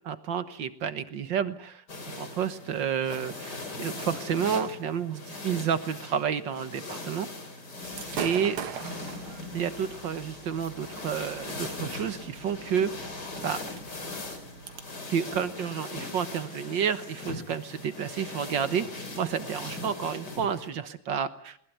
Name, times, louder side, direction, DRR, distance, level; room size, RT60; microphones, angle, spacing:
voice 1, 0.1-1.8 2.2-7.3 8.2-8.6 9.5-12.9 13.4-13.6 15.1-18.9 19.2-21.6, right 7 dB, 60° right, 13 dB, 1.8 m, -30 dB
sound 1, 1.9-20.7, left 2 dB, 50° left, 4.3 m, -40 dB
Gunshot gunfire / Fireworks, 7.8-14.8, right 7 dB, 80° right, 2.4 m, -41 dB
21.0 x 20.0 x 9.5 m, 0.68 s
omnidirectional pair, 2.3 m